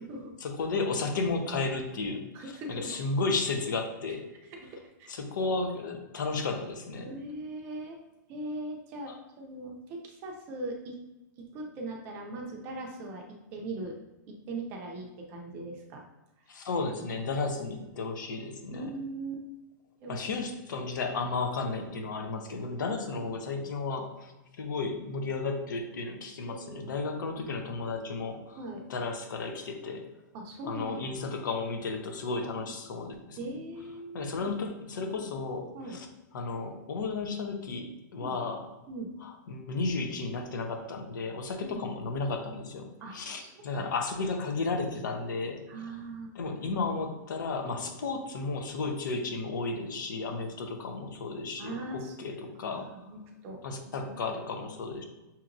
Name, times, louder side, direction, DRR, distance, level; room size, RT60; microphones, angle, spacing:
voice 1, 0.4-4.2 5.1-7.1 9.1-9.2 16.5-18.9 20.1-28.6 28.9-30.1 30.7-33.4 34.1-36.1 36.3-38.6 39.2-45.6 46.3-52.8 53.6-55.0, left 3 dB, 80° left, 4 dB, 0.8 m, -33 dB
voice 2, 2.3-2.8 4.5-5.1 7.0-8.0 8.3-10.9 11.4-13.2 13.5-13.9 14.3-16.0 18.7-19.4 20.0-20.2 26.5-27.5 28.6-28.8 30.3-31.1 32.6-32.7 33.4-34.5 35.7-36.0 38.2-38.4 38.9-39.1 41.6-41.9 43.0-43.9 45.7-46.3 51.6-52.1 52.6-54.1, right 2 dB, 20° right, 1 dB, 0.4 m, -40 dB
5.8 x 2.9 x 2.5 m, 1.0 s
supercardioid pair, 175°, 10 cm